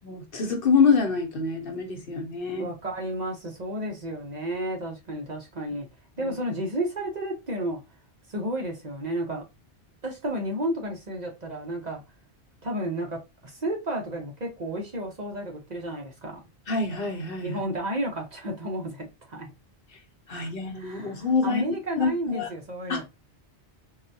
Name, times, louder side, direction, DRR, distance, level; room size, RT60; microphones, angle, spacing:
voice 1, 0.0-2.7 6.2-6.3 16.7-17.6 20.3-21.6 22.0-22.1 22.3-22.5 22.9-23.0, left 5 dB, 55° left, 0.9 m, -25 dB
voice 2, 2.6-5.9 6.2-7.8 8.3-9.4 10.0-12.0 12.6-16.4 17.4-19.5 20.7-23.0, right 1 dB, 40° right, 0.8 m, -32 dB
3.9 x 2.2 x 2.6 m
omnidirectional pair, 1.2 m